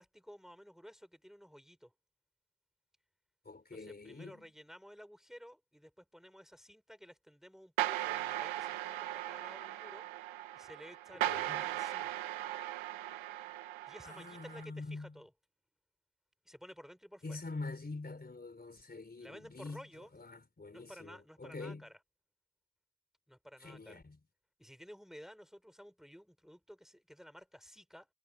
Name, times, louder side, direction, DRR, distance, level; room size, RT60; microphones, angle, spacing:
voice 1, 0.0-1.9 3.7-10.1 10.5-12.2 13.9-15.3 16.4-17.4 19.2-20.1 20.7-22.0 23.3-24.0 24.6-28.1, equal, ahead, 4.5 m, -54 dB
voice 2, 3.4-4.5 11.1-11.6 14.0-15.1 17.2-19.8 20.1-21.8 23.6-24.2, left 3 dB, 20° left, 4.2 m, -45 dB
sound 1, 7.8-14.6, right 13 dB, 85° right, 0.9 m, -38 dB
wide cardioid pair, 150°, 46 cm